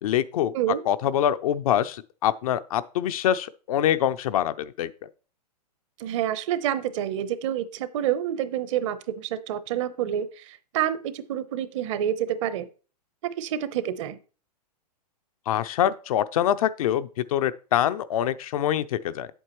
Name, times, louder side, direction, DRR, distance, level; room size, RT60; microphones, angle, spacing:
voice 1, 0.0-0.5 0.9-4.9 15.5-19.3, left 11 dB, 60° left, 0.6 m, -25 dB
voice 2, 6.0-12.7 13.2-14.2, right 10 dB, 45° right, 0.8 m, -28 dB
8.0 x 7.9 x 3.0 m
hypercardioid pair, 130°, 21 cm